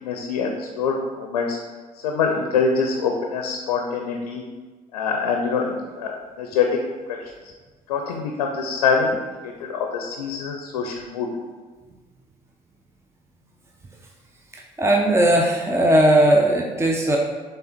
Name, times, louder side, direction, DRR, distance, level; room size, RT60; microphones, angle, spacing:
voice 1, 0.0-1.6 2.0-4.4 4.9-6.8 7.1-7.3 7.9-9.2 9.4-11.3, left 5 dB, 85° left, 2 dB, 0.6 m, -24 dB
voice 2, 14.8-17.2, right 1 dB, 15° right, 1 dB, 0.8 m, -17 dB
7.0 x 3.4 x 4.4 m, 1.4 s
hypercardioid pair, 50°, 19 cm